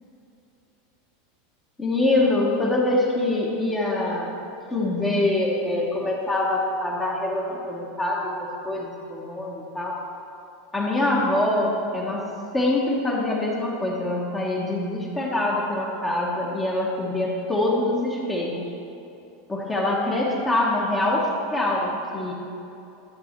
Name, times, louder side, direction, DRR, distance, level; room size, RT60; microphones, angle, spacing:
voice 1, 1.8-4.3 4.7-8.3 8.6-10.0 10.7-12.2 12.5-18.6 19.5-22.3, left 2 dB, 10° left, -3 dB, 1.0 m, -24 dB
11.5 x 6.9 x 4.4 m, 2.8 s
supercardioid pair, 165°, 0 cm